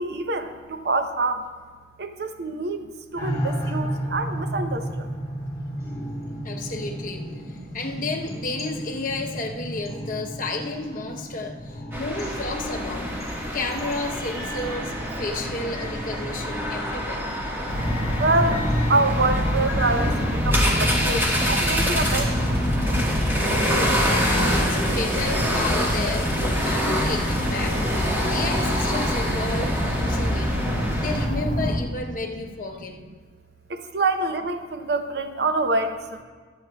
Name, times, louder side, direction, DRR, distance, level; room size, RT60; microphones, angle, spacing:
voice 1, 0.0-1.5 2.0-5.1 6.4-6.7 7.6-7.8 11.1-11.2 17.3-17.4 18.2-18.6 18.9-22.3 33.7-36.2, right 3 dB, 60° right, 7 dB, 0.7 m, -26 dB
sound 1, 3.1-20.4, equal, 20° left, 2.9 m, -34 dB
voice 2, 5.7-13.1 13.5-17.2 24.2-30.7 30.9-33.0, left 2 dB, 45° left, 2 dB, 0.9 m, -32 dB
sound 2, 11.9-31.3, equal, 15° right, 1.4 m, -27 dB
sound 3, 17.7-31.7, equal, 40° right, 2.8 m, -26 dB
22.5 x 8.1 x 2.3 m, 1.5 s
head